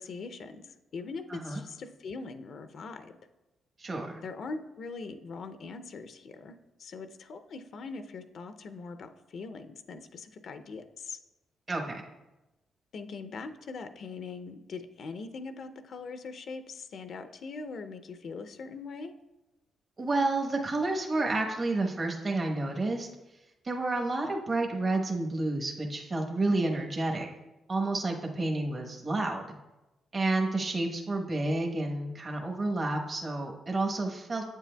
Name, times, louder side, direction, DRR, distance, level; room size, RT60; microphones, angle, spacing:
voice 1, 0.0-3.2 4.2-11.2 12.9-19.1, left 4 dB, 65° left, 8 dB, 0.5 m, -41 dB
voice 2, 3.8-4.2 11.7-12.0 20.0-23.1 23.6-27.3 27.7-29.5 30.1-34.4, right 2 dB, 40° right, 1 dB, 1.0 m, -30 dB
8.2 x 7.4 x 2.2 m, 1.0 s
supercardioid pair, 60°, 0 cm